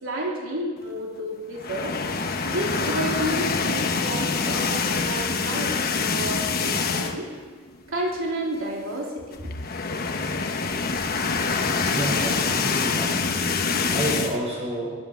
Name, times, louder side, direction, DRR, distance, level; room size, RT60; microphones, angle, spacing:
voice 1, 0.0-1.9 2.4-7.3 7.9-9.5, right 1 dB, 85° right, -2 dB, 2.8 m, -31 dB
sound 1, 1.6-7.4 7.7-7.9 8.2-8.3 9.3-14.4, left 4 dB, 50° left, 1.2 m, -25 dB
voice 2, 11.9-13.4 13.9-15.0, right 1 dB, 30° right, -3 dB, 5.0 m, -29 dB
22.5 x 8.4 x 7.1 m, 1.5 s
head